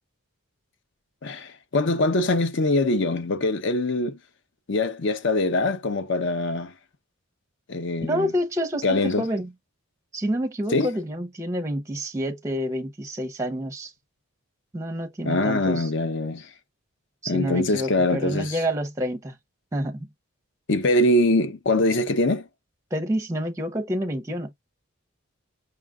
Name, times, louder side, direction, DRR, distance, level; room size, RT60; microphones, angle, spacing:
voice 1, 1.2-4.2 4.7-6.7 7.7-8.3 8.8-9.2 10.7-10.9 15.2-16.5 17.3-18.6 20.7-22.5, left 2 dB, 55° left, 0.6 m, -23 dB
voice 2, 8.0-9.5 10.1-13.9 14.7-15.9 17.2-19.4 19.7-20.1 22.9-24.5, equal, 15° right, 0.6 m, -28 dB
5.6 x 2.4 x 3.5 m
head